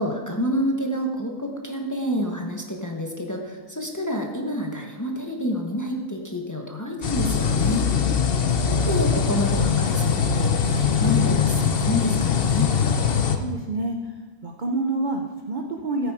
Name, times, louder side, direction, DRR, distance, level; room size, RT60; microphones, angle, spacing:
voice 1, 0.0-7.9 8.7-12.7, equal, 15° left, 1 dB, 1.0 m, -28 dB
sound 1, 7.0-13.4, left 6 dB, 50° left, 0.7 m, -22 dB
voice 2, 13.3-14.0 14.4-16.1, right 2 dB, 40° right, 2 dB, 0.7 m, -27 dB
14.0 x 8.8 x 4.9 m, 1.3 s
omnidirectional pair, 1.8 m